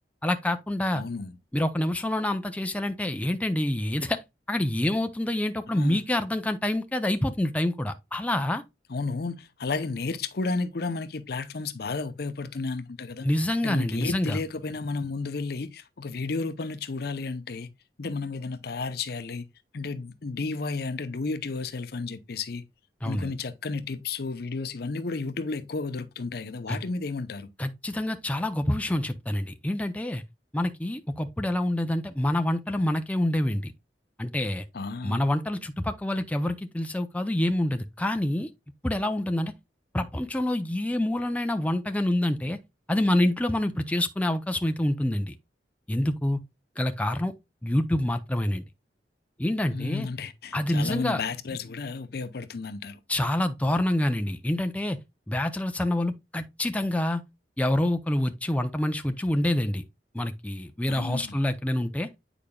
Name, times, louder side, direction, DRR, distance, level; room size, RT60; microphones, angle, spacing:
voice 1, 0.2-1.0 1.5-4.2 4.5-8.6 13.2-14.4 23.0-23.3 26.7-26.8 27.6-30.2 30.5-33.7 34.2-34.6 35.0-38.5 38.8-39.5 39.9-42.6 42.9-45.4 45.9-46.4 46.8-47.3 47.6-48.6 49.4-50.1 50.5-51.2 53.1-55.0 55.3-57.2 57.6-59.8 60.1-62.1, left 1 dB, 10° left, 0.5 m, -27 dB
voice 2, 0.9-1.3 5.7-6.0 8.9-13.3 13.6-17.7 18.0-19.5 19.7-22.6 23.0-27.5 34.7-35.2 49.7-53.0 60.9-61.4, left 3 dB, 60° left, 0.7 m, -32 dB
8.6 x 4.9 x 2.2 m
head